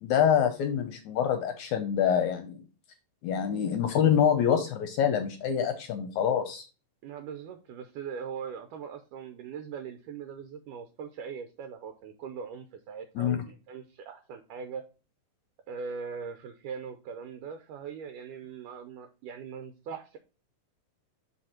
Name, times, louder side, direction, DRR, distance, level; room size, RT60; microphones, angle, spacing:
voice 1, 0.0-2.6 3.2-6.7 13.2-13.4, left 8 dB, 75° left, 7 dB, 1.8 m, -26 dB
voice 2, 7.0-14.8 15.7-20.2, right 6 dB, 75° right, 7 dB, 2.1 m, -40 dB
6.1 x 4.8 x 4.3 m, 0.33 s
omnidirectional pair, 4.1 m